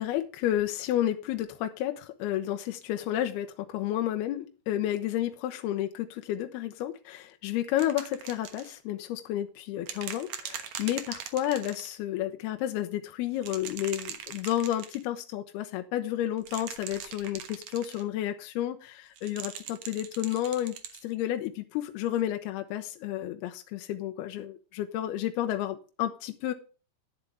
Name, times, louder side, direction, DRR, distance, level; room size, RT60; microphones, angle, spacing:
voice 1, 0.0-20.8 21.0-26.5, left 12 dB, 75° left, 7 dB, 2.6 m, -31 dB
sound 1, 7.8-8.7 9.9-12.0 13.4-15.0 16.4-18.0 19.2-21.0 22.2-22.3, right 9 dB, 75° right, 1.6 m, -41 dB
11.0 x 10.5 x 3.4 m, 0.35 s
omnidirectional pair, 5.1 m